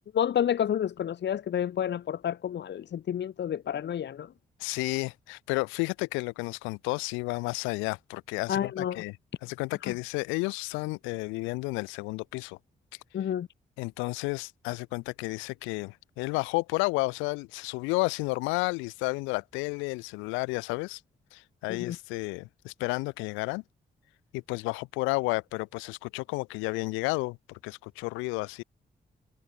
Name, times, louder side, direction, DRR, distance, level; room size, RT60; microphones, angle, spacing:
voice 1, 0.1-4.3 8.5-9.0 13.1-13.5 21.7-22.0, left 9 dB, 65° left, 1.3 m, -29 dB
voice 2, 4.6-9.2 9.4-12.6 13.8-21.0 21.3-23.6 24.3-28.6, left 25 dB, 90° left, 4.0 m, -32 dB
hypercardioid pair, 40°, 19 cm